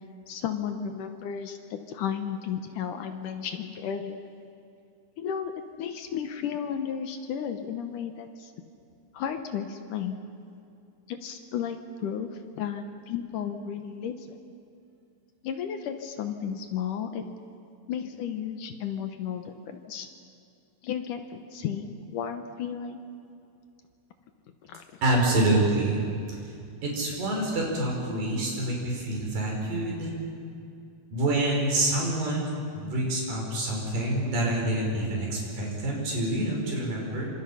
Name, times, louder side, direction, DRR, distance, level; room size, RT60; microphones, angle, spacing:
voice 1, 0.3-4.2 5.2-5.5 5.8-8.5 9.1-10.2 11.1-14.4 15.4-17.2 17.9-20.1 20.8-23.0 24.6-24.8, left 8 dB, 65° left, 7 dB, 2.2 m, -33 dB
voice 2, 25.0-26.0 26.8-30.1 31.1-37.3, right 1 dB, 55° right, -2 dB, 6.9 m, -27 dB
26.5 x 26.5 x 5.7 m, 2.5 s
omnidirectional pair, 4.6 m